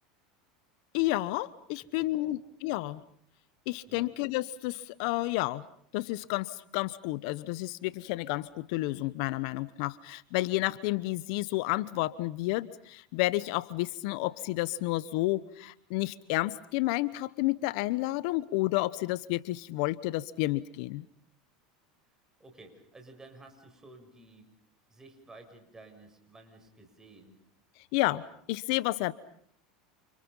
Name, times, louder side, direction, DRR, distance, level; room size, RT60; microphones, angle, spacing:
voice 1, 0.9-3.0 3.7-5.6 5.9-21.1 27.9-29.1, left 18 dB, 65° left, 17 dB, 1.0 m, -31 dB
voice 2, 1.8-2.3 2.7-2.8 3.9-4.1 22.4-24.5 24.9-27.4, right 2 dB, 15° right, 5 dB, 7.3 m, -53 dB
29.5 x 29.5 x 5.6 m, 0.62 s
supercardioid pair, 105°, 4 cm